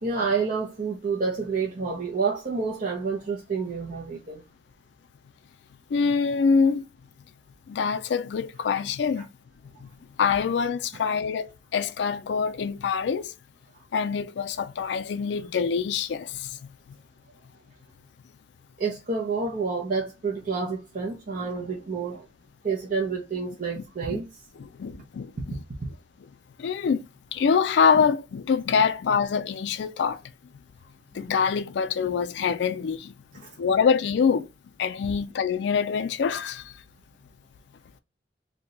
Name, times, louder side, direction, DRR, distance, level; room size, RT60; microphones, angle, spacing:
voice 1, 0.0-4.4 9.2-9.3 18.8-22.3 22.6-24.3 33.4-33.6, right 4 dB, 50° right, 0.6 m, -29 dB
voice 2, 5.9-6.8 7.7-9.3 9.8-9.9 10.2-13.3 13.9-16.6 23.8-23.9 24.1-24.2 24.6-25.6 26.6-27.0 27.3-30.2 31.1-33.1 33.6-34.5 34.8-36.7, left 6 dB, 70° left, 0.3 m, -25 dB
2.8 x 2.2 x 3.8 m
head